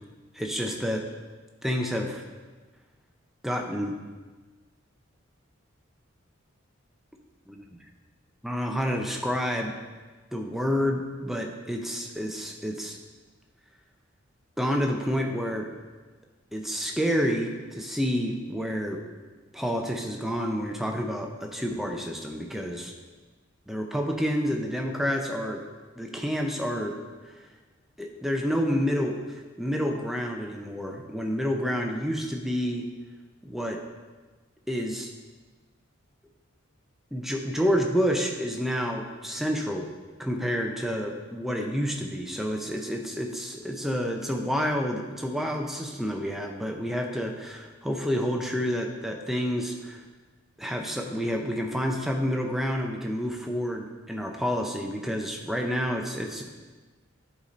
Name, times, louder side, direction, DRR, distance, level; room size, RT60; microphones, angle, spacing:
voice 1, 0.3-1.1 1.6-2.2 3.4-4.0 7.5-7.8 8.4-9.7 10.3-13.0 14.6-15.7 16.5-19.0 19.5-22.9 23.7-25.6 26.0-27.0 27.4-27.5 28.0-32.9 33.4-33.8 34.7-35.1 37.1-39.9 40.2-50.0 50.6-56.4, equal, ahead, 2 dB, 0.6 m, -29 dB
10.5 x 4.0 x 4.2 m, 1.3 s
head